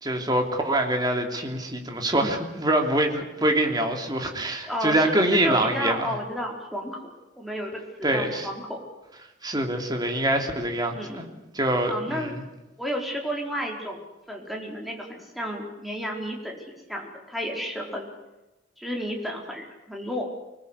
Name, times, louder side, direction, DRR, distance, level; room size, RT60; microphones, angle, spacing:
voice 1, 0.0-6.1 8.0-8.5 9.4-11.3 11.5-12.4, right 1 dB, 25° right, 3 dB, 3.2 m, -25 dB
voice 2, 4.7-7.0 7.4-8.8 10.9-11.3 11.9-12.3 12.8-14.0 14.3-18.0 18.8-20.2, equal, ahead, 0 dB, 4.6 m, -32 dB
25.0 x 20.0 x 8.4 m, 1.0 s
head